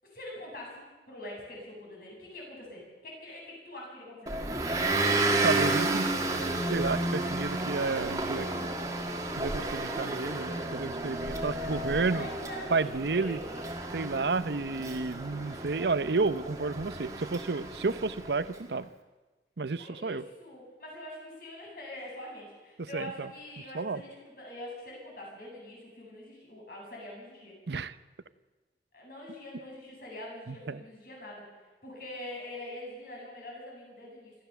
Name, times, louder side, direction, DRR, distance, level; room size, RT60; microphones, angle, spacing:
voice 1, 0.0-4.3 11.1-13.9 19.8-27.5 28.9-34.3, left 1 dB, 55° left, -2 dB, 7.9 m, -44 dB
Motor vehicle (road) / Engine, 4.3-18.5, right 2 dB, 20° right, 1.8 m, -32 dB
voice 2, 5.4-6.1 6.7-8.5 9.3-12.3 12.7-13.4 13.9-18.9 19.6-20.2 22.9-23.3 23.7-24.0 27.7-27.9 30.5-30.8, right 4 dB, 75° right, 15 dB, 0.7 m, -31 dB
25.5 x 14.5 x 7.0 m, 1.3 s
head